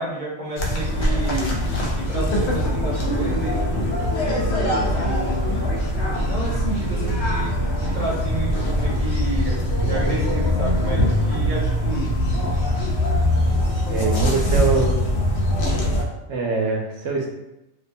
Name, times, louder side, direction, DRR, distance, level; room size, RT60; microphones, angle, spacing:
voice 1, 0.0-1.6 1.9-4.1 4.9-5.7 6.0-7.5 7.8-12.2, right 2 dB, 35° right, -6 dB, 0.7 m, -31 dB
sound 1, 0.6-16.0, equal, 70° left, 0.8 m, -22 dB
voice 2, 13.9-15.0 16.3-17.3, right 3 dB, 75° right, 0 dB, 0.9 m, -23 dB
2.6 x 2.2 x 2.6 m, 0.93 s
omnidirectional pair, 1.2 m